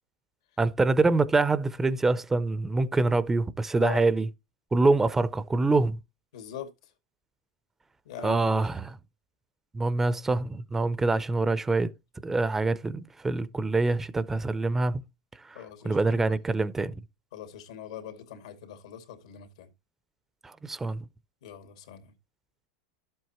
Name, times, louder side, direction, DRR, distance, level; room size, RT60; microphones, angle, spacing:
voice 1, 0.6-4.3 4.7-6.0 8.2-8.9 9.7-11.9 12.2-15.0 15.5-16.9 20.4-21.0, right 3 dB, 10° right, 0.5 m, -25 dB
voice 2, 6.3-6.7 8.1-8.5 15.5-16.4 17.3-19.7 21.4-22.1, left 9 dB, 85° left, 2.3 m, -41 dB
11.5 x 7.8 x 3.0 m
supercardioid pair, 140°, 3 cm